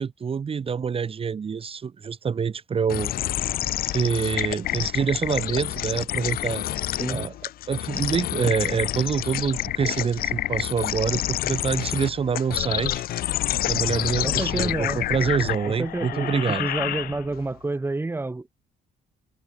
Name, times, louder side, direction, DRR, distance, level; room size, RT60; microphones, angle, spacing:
voice 1, 0.0-3.1 3.9-6.6 7.1-7.3 7.7-13.0 13.7-16.7, right 6 dB, 35° right, 2.0 m, -26 dB
sound 1, 2.9-17.4, left 14 dB, 65° left, 0.8 m, -28 dB
voice 2, 14.2-15.0 15.7-18.5, right 2 dB, 15° right, 2.1 m, -29 dB
cardioid pair, 110°, 17 cm